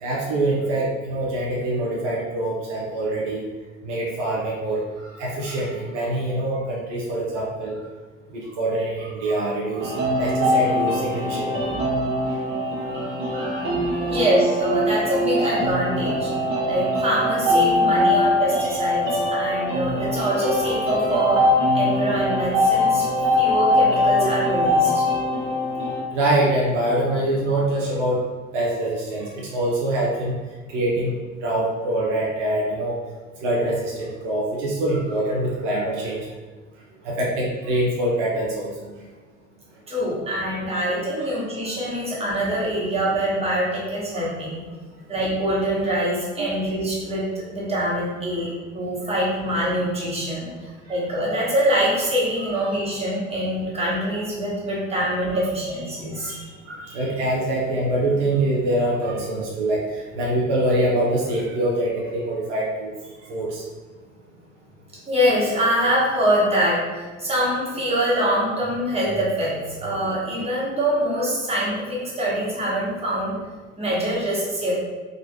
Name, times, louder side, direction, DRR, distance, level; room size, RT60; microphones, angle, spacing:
voice 1, 0.0-3.4 3.8-4.8 5.2-7.8 8.3-11.8 12.9-13.0 13.3-13.6 14.1-14.2 19.5-19.6 26.1-28.2 28.5-30.3 30.7-31.1 31.4-32.9 33.4-36.2 37.0-38.9 41.2-41.4 44.1-44.3 46.4-46.6 56.2-56.4 56.7-59.8 60.1-62.9 63.3-63.6, right 1 dB, 65° right, -4 dB, 0.6 m, -24 dB
sound 1, 9.8-26.0, left 1 dB, 35° right, 0.9 m, -22 dB
voice 2, 14.0-16.3 16.7-21.4 21.7-23.0 23.4-25.0 39.9-44.6 45.1-50.5 50.9-56.3 65.0-73.3 73.8-74.7, equal, 15° right, -6 dB, 1.2 m, -24 dB
2.9 x 2.5 x 2.7 m, 1.3 s
figure-of-eight pair, 60°, 38 cm